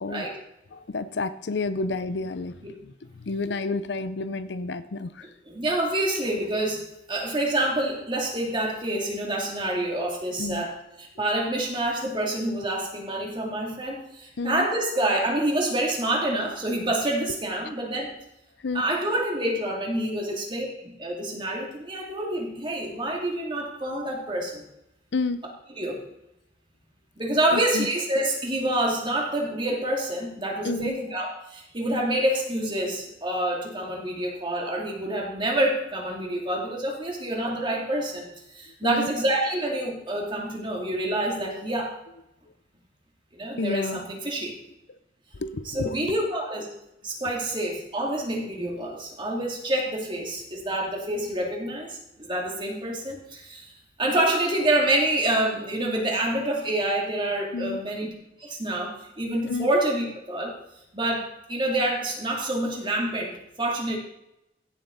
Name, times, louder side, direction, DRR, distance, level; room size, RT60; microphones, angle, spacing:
voice 1, 0.7-5.3 10.4-10.6 14.4-14.7 18.6-18.8 20.3-20.4 25.1-25.4 27.5-27.9 30.6-31.0 38.8-39.1 43.6-44.0 45.4-46.0 57.5-57.8 59.5-59.7, left 3 dB, 70° left, 13 dB, 0.6 m, -30 dB
voice 2, 5.5-18.1 18.7-24.6 25.8-26.0 27.2-42.0 43.3-44.5 45.6-46.7 47.0-58.1 58.4-60.5 60.9-64.0, right 1 dB, 30° right, -1 dB, 2.7 m, -27 dB
16.0 x 7.7 x 4.0 m, 0.84 s
head